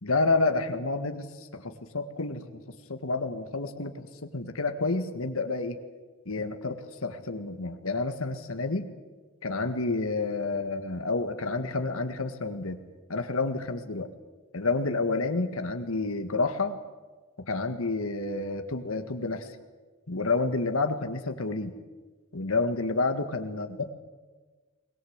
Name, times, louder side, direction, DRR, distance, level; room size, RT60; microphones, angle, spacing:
voice 1, 0.0-2.6 2.9-5.8 6.3-8.9 9.4-12.8 13.1-14.1 14.5-16.8 17.5-19.6 20.1-21.7 22.3-23.9, left 3 dB, 85° left, 7 dB, 1.9 m, -29 dB
21.5 x 21.0 x 8.2 m, 1.3 s
head